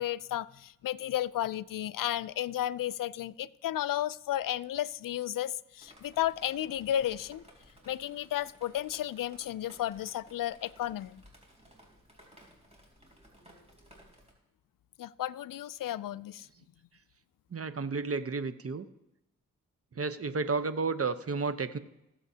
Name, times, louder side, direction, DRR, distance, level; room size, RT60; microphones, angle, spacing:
voice 1, 0.0-7.4 7.9-11.2 15.0-16.5, left 12 dB, 70° left, 0.5 m, -33 dB
Drip, 5.8-14.3, equal, 20° right, 3.6 m, -58 dB
voice 2, 17.5-18.9 19.9-21.8, right 4 dB, 40° right, 0.9 m, -32 dB
21.0 x 7.6 x 2.8 m
cardioid pair, 45°, 34 cm